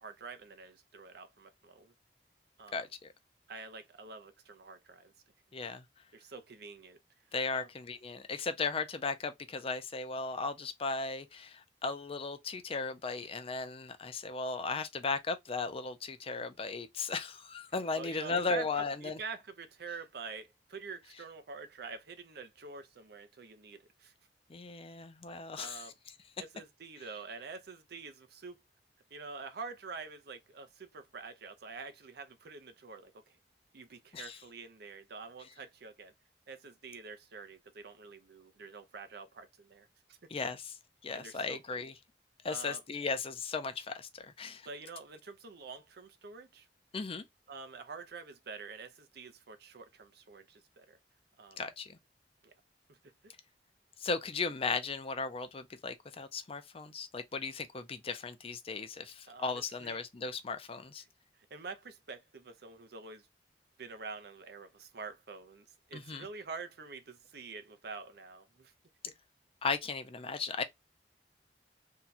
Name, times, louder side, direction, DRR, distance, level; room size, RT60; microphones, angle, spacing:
voice 1, 0.0-1.9 2.6-2.9 3.5-5.1 6.1-7.0 7.5-7.7 17.9-24.1 25.6-25.9 26.4-28.6 29.1-33.4 33.7-36.1 36.5-40.2 41.1-41.8 42.5-42.8 44.6-46.7 47.5-51.0 51.4-51.6 52.4-52.5 52.9-53.0 59.3-60.0 61.5-63.3 63.8-68.7 69.0-69.1, right 4 dB, 65° right, 0.6 m, -47 dB
voice 2, 2.7-3.1 5.5-5.8 7.3-19.2 24.5-25.9 34.1-34.4 40.3-40.7 41.0-41.9 42.4-44.7 46.9-47.3 51.6-52.0 54.0-61.0 65.9-66.3 69.6-70.6, left 4 dB, 35° left, 0.5 m, -36 dB
2.8 x 2.3 x 4.0 m
head